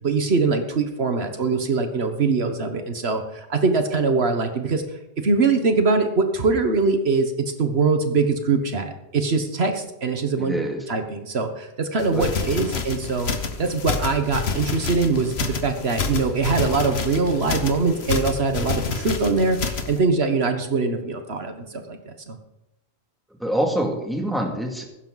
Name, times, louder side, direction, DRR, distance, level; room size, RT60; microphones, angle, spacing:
voice 1, 0.0-10.5 10.9-13.3 13.6-22.4, right 4 dB, 65° right, 7 dB, 1.4 m, -23 dB
voice 2, 10.4-10.8 12.1-12.3 12.7-12.8 23.4-24.8, right 1 dB, ahead, 1 dB, 2.3 m, -25 dB
sound 1, 12.0-20.0, left 5 dB, 65° left, 1.4 m, -28 dB
15.5 x 12.0 x 4.0 m, 0.93 s
omnidirectional pair, 1.1 m